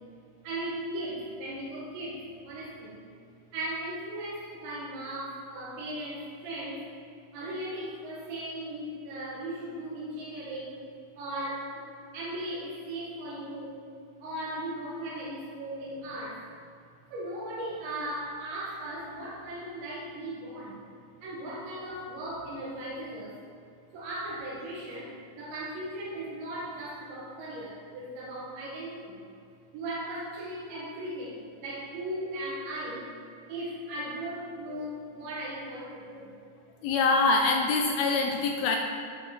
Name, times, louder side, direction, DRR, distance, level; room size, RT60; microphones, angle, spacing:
voice 1, 0.4-3.0 3.5-6.9 7.3-10.8 11.2-11.8 12.1-13.8 14.2-16.6 17.1-20.8 21.2-23.3 23.9-29.3 29.7-33.1 33.5-36.3, right 1 dB, 80° right, -6 dB, 4.0 m, -37 dB
voice 2, 36.8-38.8, left 3 dB, 85° left, 2 dB, 2.2 m, -25 dB
11.5 x 6.4 x 6.0 m, 2.5 s
omnidirectional pair, 5.0 m